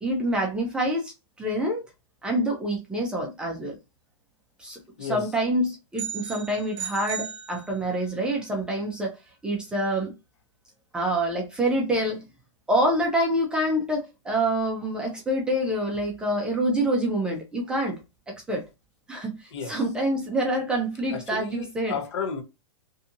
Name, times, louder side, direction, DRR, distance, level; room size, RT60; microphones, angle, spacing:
voice 1, 0.0-1.1 1.4-1.8 2.2-3.8 4.6-9.1 9.4-10.1 10.9-12.2 12.7-18.0 18.3-18.6 19.1-21.9, right 1 dB, 5° right, 0.4 m, -26 dB
voice 2, 5.0-5.3 19.5-19.8 21.1-22.4, left 6 dB, 65° left, 0.9 m, -33 dB
sound 1, 6.0-8.1, right 8 dB, 90° right, 0.7 m, -36 dB
2.6 x 2.5 x 2.5 m
hypercardioid pair, 155°, 16 cm